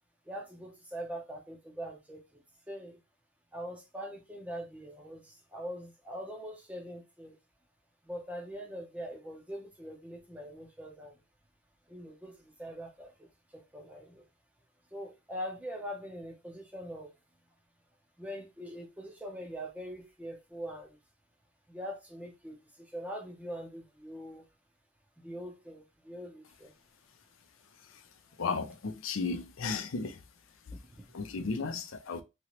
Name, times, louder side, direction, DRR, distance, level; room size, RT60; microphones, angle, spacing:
voice 1, 0.3-2.2 2.7-3.0 3.5-7.4 8.0-11.2 11.9-13.3 13.5-14.2 14.9-17.1 18.2-21.0 21.7-24.5 25.2-26.7 30.9-31.1, equal, 5° right, 0.6 m, -42 dB
voice 2, 28.4-30.2 31.1-32.2, left 4 dB, 70° left, 0.5 m, -34 dB
3.0 x 3.0 x 2.9 m
head